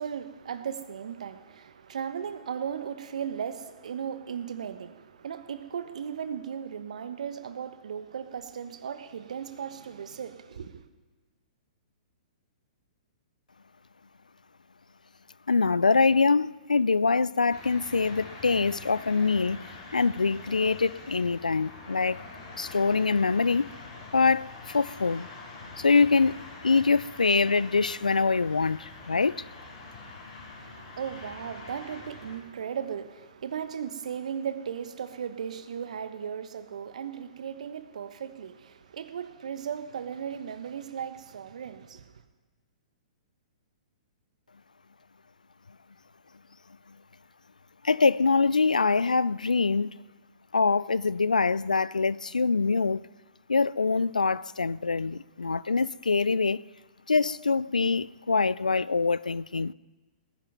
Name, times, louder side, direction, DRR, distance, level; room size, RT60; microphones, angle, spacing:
voice 1, 0.0-10.8 30.6-42.0, right 8 dB, 65° right, 1.2 m, -36 dB
voice 2, 15.5-19.6 19.9-22.2 22.6-23.7 24.1-25.3 25.8-29.4 47.8-49.9 50.5-53.1 53.5-56.6 57.1-59.7, left 4 dB, 80° left, 0.3 m, -24 dB
sound 1, 17.5-32.4, left 3 dB, 50° left, 4.6 m, -45 dB
19.0 x 10.5 x 5.4 m
figure-of-eight pair, 115°, 4 cm